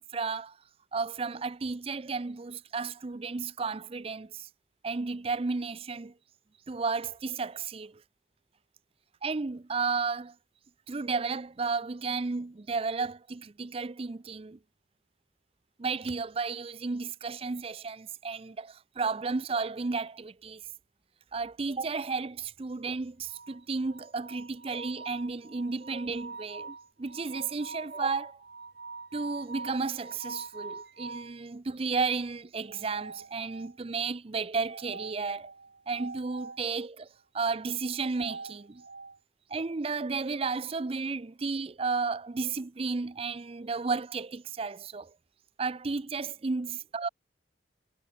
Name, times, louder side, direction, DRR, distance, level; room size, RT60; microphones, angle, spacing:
voice 1, 0.1-0.6 0.9-4.5 4.8-6.1 6.7-8.0 9.2-10.3 10.9-14.6 15.8-20.6 21.3-28.4 29.1-35.5 35.9-37.1 37.3-38.8 39.5-45.1 45.6-47.1, right 4 dB, 30° right, 0.5 m, -33 dB
sound 1, 23.3-31.4 32.6-33.9 34.6-36.6 37.8-39.2, right 4 dB, 60° right, 1.7 m, -44 dB
head